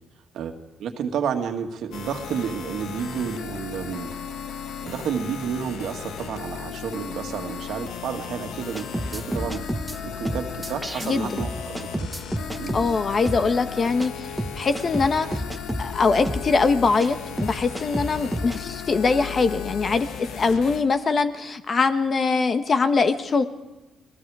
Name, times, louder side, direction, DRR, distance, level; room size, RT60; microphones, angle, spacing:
voice 1, 0.3-4.1 4.8-9.6 10.0-12.1 12.6-12.9, right 7 dB, 75° right, 5 dB, 1.9 m, -31 dB
sound 1, 1.9-20.8, left 7 dB, 80° left, 1.6 m, -36 dB
sound 2, 8.7-10.0 10.2-11.1 11.4-12.9 13.2-13.4 14.0-14.1 14.4-15.9 16.2-16.5 17.0-17.1 17.4-18.6, right 1 dB, 5° right, 1.2 m, -30 dB
voice 2, 11.0-11.4 12.7-14.3 14.5-15.4 15.8-23.4, left 4 dB, 40° left, 9 dB, 1.3 m, -22 dB
29.5 x 20.0 x 4.9 m, 1.0 s
cardioid pair, 90°, 0 cm